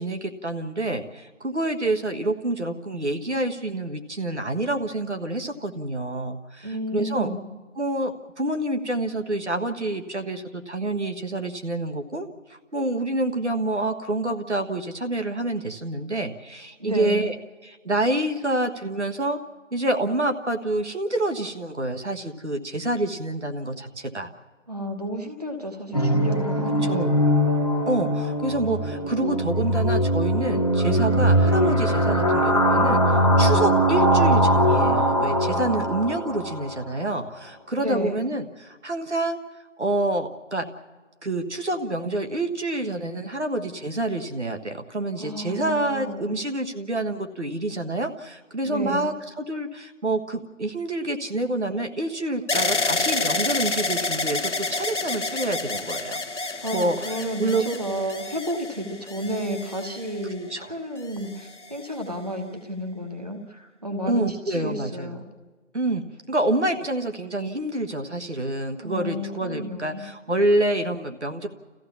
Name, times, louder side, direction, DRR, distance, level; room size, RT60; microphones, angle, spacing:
voice 1, 0.0-7.3 7.8-17.3 17.6-19.4 19.7-24.3 26.8-27.1 27.9-39.4 39.8-40.7 41.2-57.6 60.5-60.7 64.1-65.2 65.7-71.5, right 2 dB, 65° right, 5 dB, 1.5 m, -27 dB
voice 2, 6.6-7.5 16.8-17.3 24.7-27.2 37.8-38.3 45.2-46.3 48.7-49.1 56.6-56.8 57.0-65.2 68.8-70.0, equal, 30° right, 4 dB, 1.2 m, -31 dB
sound 1, 25.9-36.7, equal, 30° left, 1.1 m, -21 dB
sound 2, 52.5-60.5 61.2-61.9, left 3 dB, 70° left, 0.9 m, -29 dB
29.0 x 14.5 x 7.1 m, 1.4 s
figure-of-eight pair, 175°, 38 cm